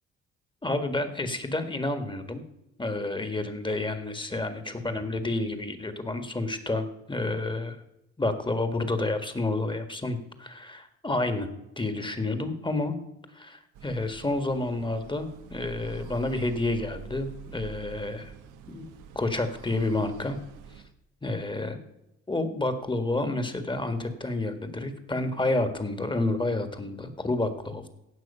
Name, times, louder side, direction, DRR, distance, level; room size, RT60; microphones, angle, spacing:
voice 1, 0.6-2.4 2.8-7.8 8.2-11.5 11.8-13.0 13.4-18.3 18.7-18.9 19.2-20.4 21.2-21.8 22.3-27.9, left 2 dB, 15° left, 9 dB, 1.7 m, -29 dB
sound 1, 13.7-20.9, right 7 dB, 85° right, 1.1 m, -46 dB
17.0 x 6.3 x 5.6 m, 0.88 s
cardioid pair, 90°, 30 cm